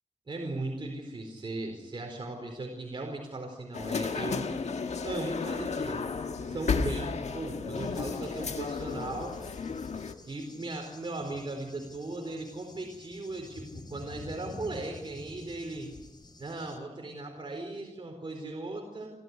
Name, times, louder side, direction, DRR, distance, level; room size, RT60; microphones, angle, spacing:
voice 1, 0.3-4.5 5.0-6.0 6.5-9.4 10.3-15.9 16.4-19.1, right 2 dB, 40° right, 1 dB, 4.5 m, -37 dB
sound 1, 3.7-10.1, left 5 dB, 65° left, 1.6 m, -33 dB
Cricket / Thunder, 7.8-16.8, left 2 dB, 35° left, 3.1 m, -50 dB
28.5 x 14.0 x 9.7 m, 1.1 s
wide cardioid pair, 95°, 12 cm